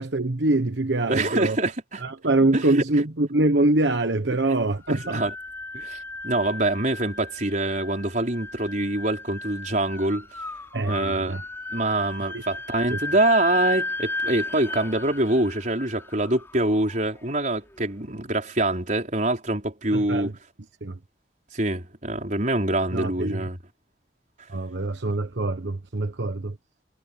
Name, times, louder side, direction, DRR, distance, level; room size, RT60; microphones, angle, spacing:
voice 1, 0.0-1.6 2.0-5.2 10.7-11.4 12.3-12.4 12.9-13.0 19.9-20.3 20.8-21.0 22.9-23.5 24.5-26.6, right 2 dB, 85° right, 1.2 m, -24 dB
voice 2, 1.1-2.0 2.5-2.8 4.9-5.3 5.7-6.0 6.2-10.3 10.8-11.4 11.7-20.3 21.5-23.6, right 2 dB, 45° right, 4.8 m, -25 dB
sound 1, 4.7-17.8, left 2 dB, 15° left, 5.5 m, -35 dB
head